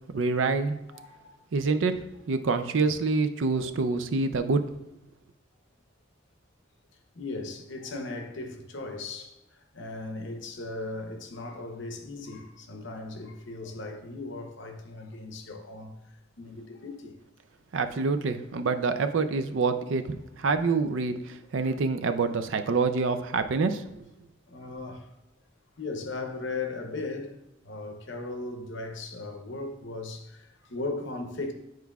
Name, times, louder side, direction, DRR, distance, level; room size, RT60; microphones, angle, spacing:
voice 1, 0.1-0.8 1.5-4.7 17.7-23.8, right 4 dB, 75° right, 0.4 m, -26 dB
voice 2, 0.9-1.5 3.5-3.7 7.1-17.1 21.5-21.7 23.5-23.6 24.5-25.1 25.8-27.3 27.6-31.5, left 3 dB, 65° left, 0.8 m, -37 dB
9.2 x 4.6 x 2.3 m
head